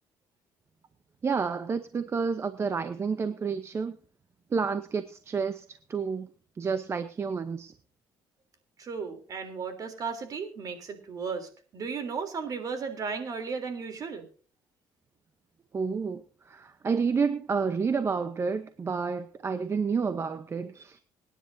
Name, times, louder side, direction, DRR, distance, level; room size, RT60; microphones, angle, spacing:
voice 1, 1.2-4.0 4.5-5.6 5.9-6.3 6.6-7.7 15.7-16.2 16.5-21.0, right 5 dB, 35° right, 0.9 m, -29 dB
voice 2, 8.8-14.2, right 5 dB, 50° right, 3.5 m, -35 dB
25.5 x 10.0 x 2.7 m
cardioid pair, 95°, 8 cm